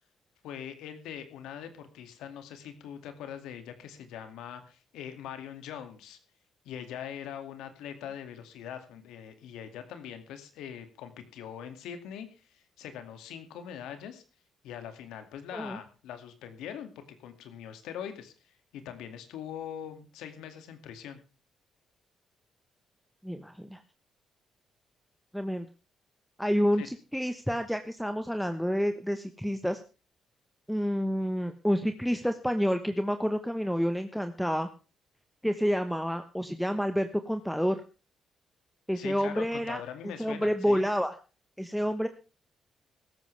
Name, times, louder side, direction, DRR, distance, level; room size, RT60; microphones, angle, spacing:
voice 1, 0.4-6.2 6.6-14.2 14.6-21.2 26.8-26.9 38.9-40.8, left 9 dB, 90° left, 8 dB, 2.2 m, -42 dB
voice 2, 23.2-23.8 25.3-25.7 26.4-29.8 30.7-34.7 35.4-37.8 38.9-39.8 40.2-41.1 41.6-42.1, equal, ahead, 9 dB, 1.1 m, -29 dB
16.5 x 13.5 x 3.4 m, 0.32 s
cardioid pair, 90°, 0 cm